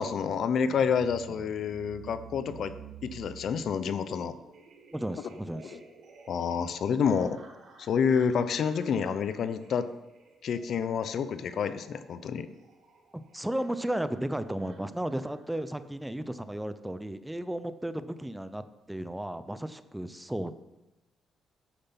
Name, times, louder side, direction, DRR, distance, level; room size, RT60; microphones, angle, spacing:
voice 1, 0.0-2.7 3.0-4.3 5.7-5.8 6.3-7.4 7.8-9.9 10.4-12.5, left 6 dB, 65° left, 12 dB, 0.7 m, -28 dB
sound 1, 0.7-15.9, right 5 dB, 70° right, 2.5 m, -52 dB
voice 2, 4.9-5.8 13.1-18.6 18.9-20.5, right 1 dB, 5° right, 12 dB, 0.6 m, -34 dB
9.8 x 6.8 x 5.8 m, 1.0 s
cardioid pair, 90°, 0 cm